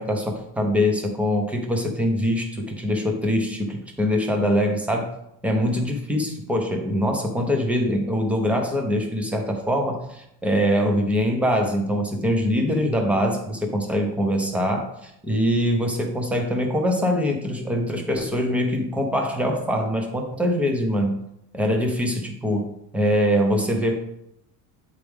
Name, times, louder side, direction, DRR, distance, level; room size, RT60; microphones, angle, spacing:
voice 1, 0.0-5.1 5.4-21.2 21.5-24.0, equal, 5° right, 3 dB, 0.7 m, -23 dB
8.3 x 4.6 x 3.5 m, 0.78 s
cardioid pair, 160°, 46 cm